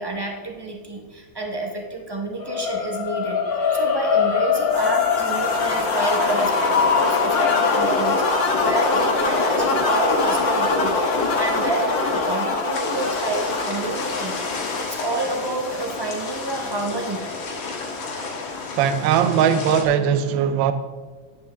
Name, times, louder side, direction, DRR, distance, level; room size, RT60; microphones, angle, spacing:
voice 1, 0.0-3.4 3.7-11.0 11.4-14.4 14.8-17.3, right 2 dB, 35° right, 1 dB, 0.3 m, -29 dB
sound 1, 2.4-12.6, left 6 dB, 50° left, 1.4 m, -24 dB
sound 2, 4.7-19.1, left 3 dB, 70° left, 1.8 m, -25 dB
sound 3, 12.7-19.9, left 4 dB, 90° left, 2.2 m, -32 dB
voice 2, 18.8-20.7, right 8 dB, 80° right, 10 dB, 1.3 m, -19 dB
10.5 x 8.5 x 3.4 m, 1.3 s
omnidirectional pair, 2.2 m